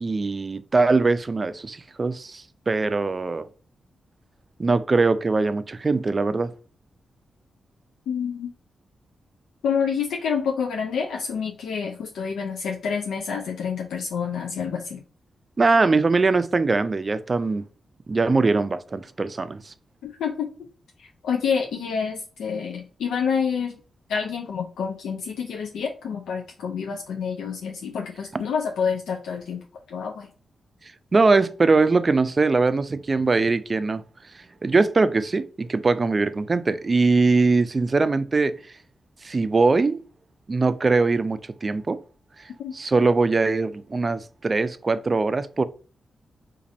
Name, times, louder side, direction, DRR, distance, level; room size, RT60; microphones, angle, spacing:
voice 1, 0.0-3.5 4.6-6.5 15.6-17.6 18.1-19.7 28.3-28.4 31.1-34.0 34.6-38.5 39.2-40.0 40.5-42.0 42.7-45.6, right 3 dB, 45° right, 0.4 m, -21 dB
voice 2, 8.1-8.5 9.6-15.0 20.0-20.5 21.0-23.8 24.1-30.3 42.6-42.7, left 6 dB, 85° left, 0.4 m, -28 dB
2.6 x 2.6 x 4.1 m
supercardioid pair, 45°, 0 cm